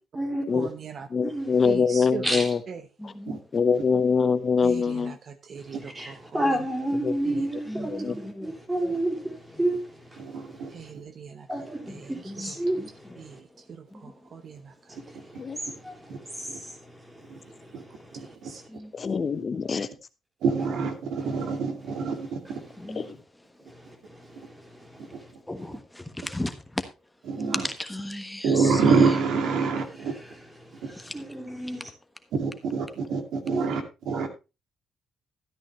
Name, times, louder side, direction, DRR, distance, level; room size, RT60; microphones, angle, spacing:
voice 1, 0.5-1.1 1.6-2.4 2.7-2.8 4.6-6.6 7.2-7.5 7.8-8.2 10.7-11.5 11.9-12.1 13.2-13.4 13.7-14.6 18.1-18.6, right 6 dB, 55° right, 0.9 m, -40 dB
voice 2, 1.1-2.6 3.5-5.1 7.0-7.1 7.9-8.1 15.4-15.6 19.0-19.9 23.0-23.1, left 5 dB, 40° left, 0.8 m, -23 dB
voice 3, 2.2-2.6 5.8-9.8 11.5-12.8 15.0-15.1 15.8-16.0 16.4-16.7 19.8-19.9 30.9-31.9 33.5-33.6, right 1 dB, 15° right, 3.2 m, -29 dB
voice 4, 3.0-3.6 3.9-4.3 7.7-9.3 9.5-9.6 11.9-13.2 13.9-14.1 18.7-18.9 22.8-23.1 25.5-26.8 27.4-29.0 31.0-31.1, left 1 dB, 10° left, 1.3 m, -37 dB
voice 5, 10.2-10.7 15.7-15.8 16.1-16.2 17.3-17.4 17.7-17.8 18.2-18.5 20.4-22.6 27.3-27.7 28.4-30.1 30.8-30.9 32.3-34.3, right 5 dB, 80° right, 2.2 m, -26 dB
13.5 x 9.1 x 3.1 m
cardioid pair, 90°, 0 cm